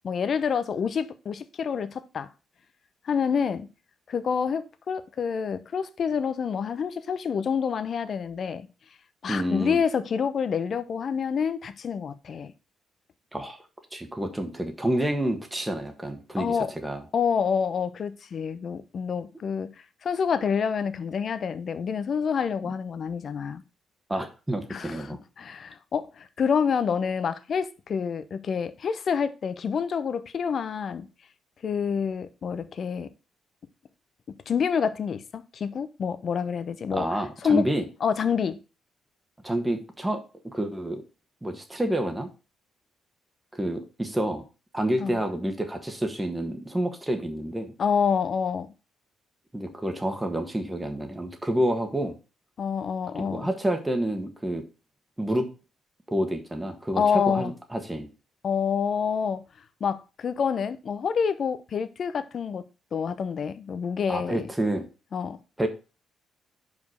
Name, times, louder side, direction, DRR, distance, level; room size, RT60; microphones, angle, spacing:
voice 1, 0.0-2.3 3.0-3.7 4.1-8.7 9.2-12.5 16.4-16.7 17.1-19.7 20.0-23.6 24.7-31.1 31.6-33.1 34.5-37.1 37.4-37.7 38.0-38.6 45.0-45.2 47.8-48.7 52.6-53.5 57.0-57.5 58.4-59.4 59.8-62.6 62.9-64.5 65.1-65.4, left 6 dB, 50° left, 0.8 m, -27 dB
voice 2, 9.3-9.8 13.3-13.6 13.9-17.0 22.6-22.7 24.1-25.2 36.9-37.9 39.4-40.2 40.5-41.0 41.4-42.3 43.5-44.4 44.7-47.7 49.5-52.2 53.1-54.6 55.2-55.4 56.1-58.1 64.1-64.9 65.6-65.7, right 1 dB, 10° right, 1.5 m, -28 dB
5.2 x 5.2 x 6.3 m
cardioid pair, 90°, 0 cm